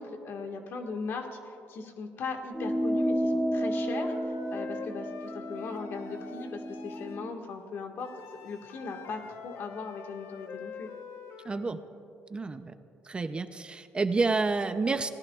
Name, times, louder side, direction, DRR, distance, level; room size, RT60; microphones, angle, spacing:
voice 1, 0.0-8.1 8.4-10.9, left 4 dB, 60° left, 3 dB, 1.8 m, -39 dB
sound 1, 2.5-7.4, equal, ahead, 1.1 m, -32 dB
Wind instrument woodwind instrument, 3.7-7.2 8.0-11.7, left 7 dB, 85° left, 1.0 m, -46 dB
voice 2, 11.4-11.8 12.3-12.7 13.0-15.1, right 3 dB, 25° right, 9 dB, 0.6 m, -29 dB
30.0 x 18.0 x 2.4 m, 2.7 s
cardioid pair, 115°, 4 cm